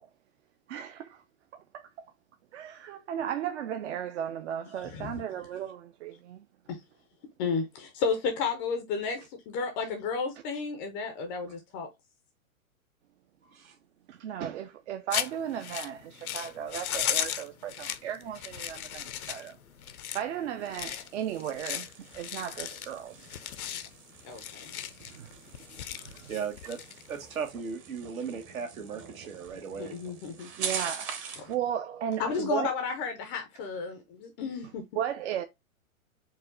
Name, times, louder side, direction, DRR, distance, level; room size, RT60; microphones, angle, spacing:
voice 1, 0.7-1.2 1.5-1.9 2.5-6.5 14.1-19.6 20.1-23.3 25.0-25.4 25.9-26.3 30.6-32.7 34.9-35.4, right 9 dB, 55° right, 0.5 m, -35 dB
voice 2, 4.8-5.2 6.7-6.8 7.4-11.9 24.2-24.7 29.8-30.5 31.4-31.5 32.2-34.8, left 5 dB, 20° left, 0.3 m, -32 dB
sound 1, 15.1-27.5, left 10 dB, 90° left, 0.6 m, -37 dB
sound 2, 20.9-31.5, right 6 dB, 30° right, 0.8 m, -43 dB
voice 3, 26.3-26.8 27.1-29.9, right 6 dB, 75° right, 1.2 m, -37 dB
4.6 x 2.1 x 3.7 m
hypercardioid pair, 115°, 42 cm